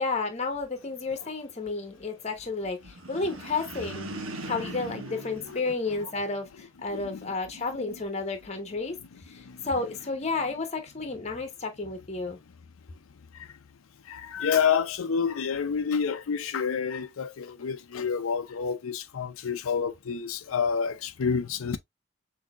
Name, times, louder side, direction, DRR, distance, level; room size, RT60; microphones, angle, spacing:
voice 1, 0.0-4.1 4.4-9.0 9.3-12.4, left 3 dB, 35° left, 0.9 m, -32 dB
sound 1, 2.8-6.4, right 1 dB, 90° right, 1.1 m, -40 dB
voice 2, 4.1-4.8 5.1-5.6 5.9-6.0 6.9-7.3 9.5-9.7 13.3-13.5 14.1-21.8, left 6 dB, 90° left, 0.5 m, -29 dB
6.2 x 2.7 x 2.3 m
head